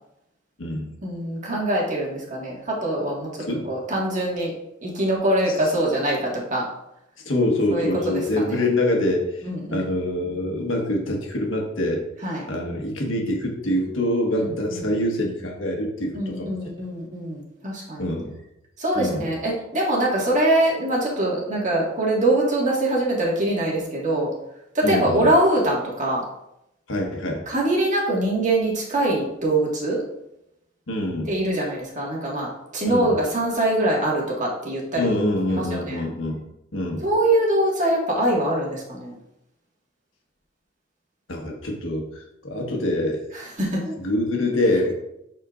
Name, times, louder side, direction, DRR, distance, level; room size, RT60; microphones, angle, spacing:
voice 1, 1.0-3.3 3.7-4.5 4.8-6.6 7.7-8.6 9.4-9.8 12.2-12.5 14.4-14.8 16.1-18.0 18.8-24.3 24.7-26.2 27.5-30.0 31.3-35.1 35.6-36.1 37.0-39.1 43.3-43.9, right 1 dB, 40° right, -3 dB, 1.8 m, -23 dB
voice 2, 3.4-3.7 7.2-9.3 9.7-12.0 12.5-16.5 18.0-18.3 18.9-19.3 24.8-25.3 26.9-27.4 30.9-31.3 32.8-33.1 35.0-36.4 36.7-37.1 41.3-43.2 44.0-44.9, left 1 dB, 80° left, 1 dB, 1.4 m, -25 dB
11.0 x 4.4 x 2.5 m, 0.84 s
head